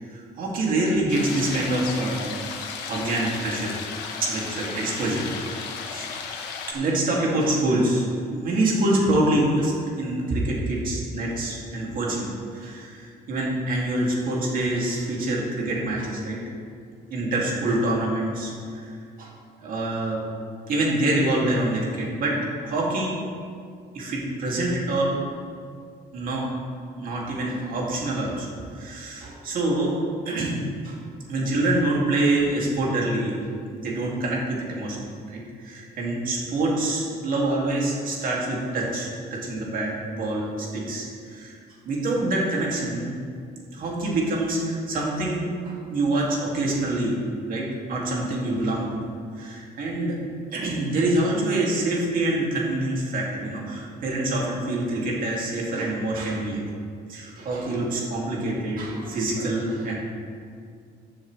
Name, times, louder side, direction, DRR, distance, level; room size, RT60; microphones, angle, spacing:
voice 1, 0.1-2.3 2.9-3.8 4.2-6.1 6.7-8.1 8.3-16.4 17.1-19.3 19.6-20.2 20.7-23.2 23.9-25.2 26.1-26.5 27.0-28.5 28.7-30.0 30.2-31.0 31.3-33.4 33.7-41.6 41.8-43.2 43.7-49.0 49.4-50.2 50.5-56.6 57.1-59.9, right 1 dB, 55° right, -3 dB, 2.6 m, -26 dB
sound 1, 1.1-6.7, left 5 dB, 90° left, 1.2 m, -34 dB
14.0 x 7.4 x 3.3 m, 2.2 s
cardioid pair, 110°, 17 cm